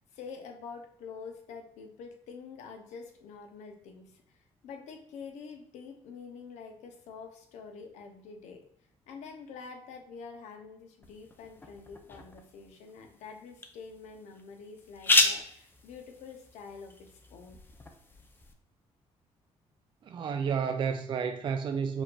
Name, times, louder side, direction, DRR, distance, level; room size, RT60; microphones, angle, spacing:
voice 1, 0.0-8.6 9.1-17.6, left 5 dB, 90° left, 0.8 m, -47 dB
sound 1, 11.0-18.5, left 2 dB, 20° left, 0.6 m, -33 dB
voice 2, 20.0-22.0, right 6 dB, 45° right, 0.4 m, -31 dB
5.2 x 3.8 x 2.4 m
cardioid pair, 110°, 11 cm